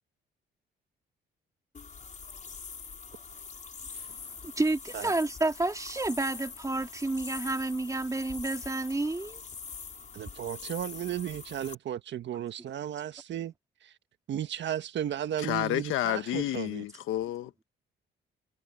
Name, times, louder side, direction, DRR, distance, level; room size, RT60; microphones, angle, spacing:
sound 1, 1.7-11.8, left 5 dB, 40° left, 5.5 m, -44 dB
voice 1, 4.4-9.4, right 2 dB, 15° right, 3.0 m, -30 dB
voice 2, 10.1-13.5 13.8-13.9 14.3-16.8, right 10 dB, 65° right, 1.5 m, -35 dB
voice 3, 15.4-17.6, left 13 dB, 90° left, 1.5 m, -30 dB
cardioid pair, 90°, 20 cm